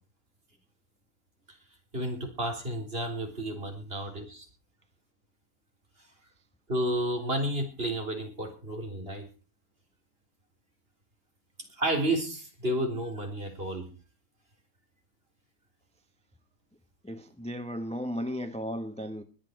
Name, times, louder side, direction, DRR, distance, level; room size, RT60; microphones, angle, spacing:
voice 1, 1.9-4.5 6.7-9.2 11.8-13.9, right 1 dB, 40° right, 4.0 m, -31 dB
voice 2, 17.0-19.2, equal, 5° left, 0.8 m, -35 dB
21.0 x 8.4 x 4.7 m
omnidirectional pair, 1.6 m